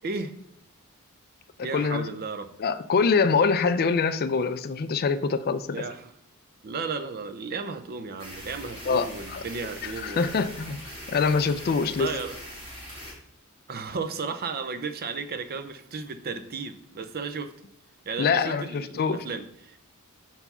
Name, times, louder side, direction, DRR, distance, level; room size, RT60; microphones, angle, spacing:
voice 1, 0.0-0.3 1.6-2.5 5.7-6.1 6.6-10.4 11.9-12.3 13.7-17.5 18.1-19.8, right 4 dB, 45° right, 10 dB, 0.5 m, -34 dB
voice 2, 1.7-2.1 2.6-5.8 8.9-9.4 9.8-10.8 11.1-12.1 18.2-19.2, left 5 dB, 45° left, 13 dB, 0.4 m, -24 dB
sound 1, 8.2-13.1, equal, 25° right, 2.6 m, -42 dB
5.7 x 4.5 x 5.5 m, 0.71 s
head